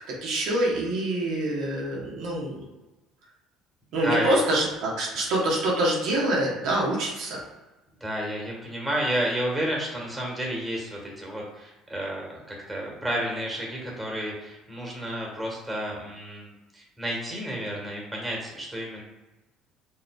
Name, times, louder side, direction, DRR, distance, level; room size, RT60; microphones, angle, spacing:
voice 1, 0.0-2.6 3.9-7.4, right 1 dB, 70° right, -4 dB, 1.1 m, -26 dB
voice 2, 4.0-4.3 8.0-19.0, equal, 10° right, -2 dB, 1.5 m, -31 dB
4.7 x 3.1 x 2.3 m, 1.1 s
supercardioid pair, 75°, 0 cm